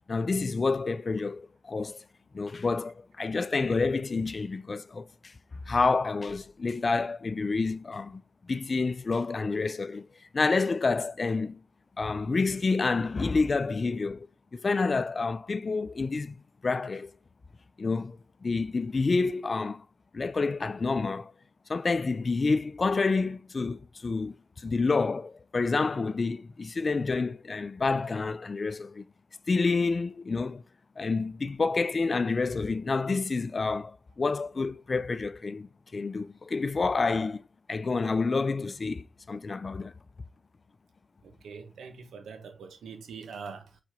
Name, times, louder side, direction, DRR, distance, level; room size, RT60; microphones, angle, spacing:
voice 1, 0.1-2.0 2.3-5.3 5.7-8.2 8.5-10.1 10.3-11.6 12.0-14.3 14.5-16.4 16.6-17.1 17.8-19.8 20.1-21.3 21.7-29.0 29.5-30.6 31.0-37.4 37.7-39.9, left 4 dB, 45° left, 0.5 m, -28 dB
voice 2, 41.2-43.8, right 5 dB, 80° right, 1.3 m, -43 dB
4.6 x 4.2 x 4.9 m
cardioid pair, 55°, 0 cm